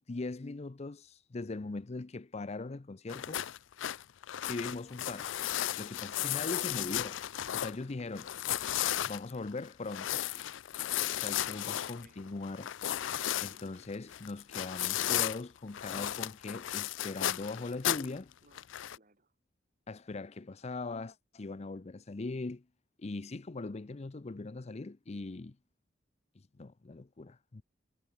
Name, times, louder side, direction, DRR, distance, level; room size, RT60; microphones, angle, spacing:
voice 1, 0.0-3.4 4.4-5.4 5.8-7.2 7.5-8.3 9.0-10.5 11.1-12.7 13.4-18.3 19.9-22.6 23.0-25.6 26.6-27.6, left 3 dB, 35° left, 0.6 m, -40 dB
sound 1, 3.1-7.8 8.2-15.4 15.7-18.2 18.5-19.0, left 12 dB, 90° left, 0.4 m, -34 dB
voice 2, 11.5-12.2 12.9-13.6 18.4-19.3, right 2 dB, 45° right, 5.3 m, -64 dB
head